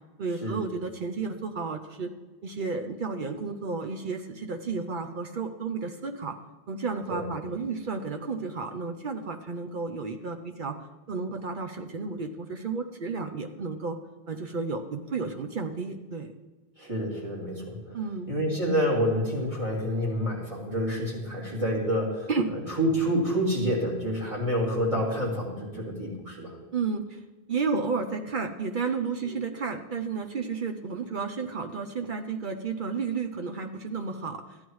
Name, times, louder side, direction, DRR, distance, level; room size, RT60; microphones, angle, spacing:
voice 1, 0.2-2.1 2.4-6.4 6.7-10.8 11.1-14.0 14.3-16.3 17.9-18.5 22.3-22.5 26.7-27.2 27.5-34.6, right 4 dB, 55° right, 5 dB, 0.7 m, -32 dB
voice 2, 16.8-18.0 18.3-22.3 22.7-26.5 29.2-29.4, equal, 30° right, -5 dB, 2.8 m, -28 dB
14.0 x 9.7 x 3.1 m, 1.2 s
omnidirectional pair, 1.1 m